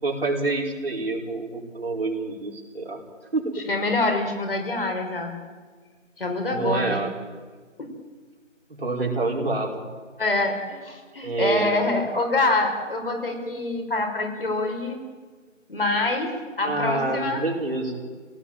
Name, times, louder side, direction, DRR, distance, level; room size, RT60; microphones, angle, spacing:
voice 1, 0.0-3.0 3.3-3.6 6.5-7.1 8.7-9.8 11.2-12.0 16.6-18.0, right 3 dB, 50° right, 0 dB, 5.2 m, -27 dB
voice 2, 3.7-5.4 6.2-7.0 10.2-15.0 15.7-17.4, left 2 dB, 45° left, 3 dB, 5.1 m, -25 dB
26.5 x 18.5 x 9.1 m, 1.5 s
figure-of-eight pair, 160°, 38 cm